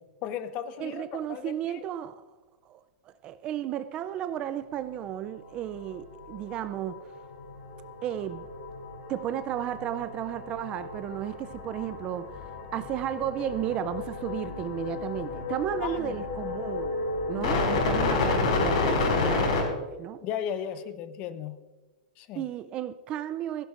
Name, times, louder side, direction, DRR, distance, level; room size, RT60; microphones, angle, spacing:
voice 1, 0.2-1.8 15.8-16.2 17.3-17.6 17.9-18.2 20.2-21.6 22.2-22.5, left 9 dB, 30° left, 0.7 m, -36 dB
voice 2, 0.8-2.2 2.7-2.8 3.1-7.0 8.0-8.5 9.1-16.9 17.3-20.2 22.4-23.7, right 11 dB, 25° right, 0.3 m, -34 dB
sound 1, 5.6-5.9 6.2-19.6, left 3 dB, 65° left, 5.0 m, -31 dB
16.5 x 16.0 x 2.5 m
supercardioid pair, 165°, 4 cm